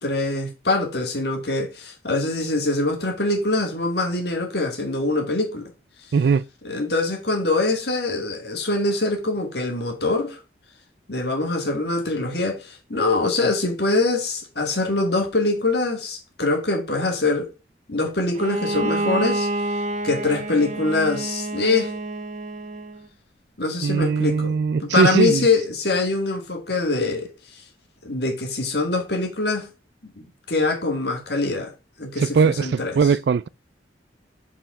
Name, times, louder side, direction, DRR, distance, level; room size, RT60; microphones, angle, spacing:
voice 1, 0.0-5.7 6.6-10.4 11.1-17.5 17.9-19.5 20.0-21.9 23.6-27.3 28.0-29.7 30.0-31.7 32.0-33.0, left 2 dB, 60° left, 1.9 m, -24 dB
voice 2, 6.1-6.4 23.8-25.5 32.2-33.5, right 5 dB, 65° right, 0.3 m, -20 dB
Bowed string instrument, 18.3-23.0, right 2 dB, 40° right, 0.8 m, -28 dB
5.6 x 5.0 x 5.4 m
head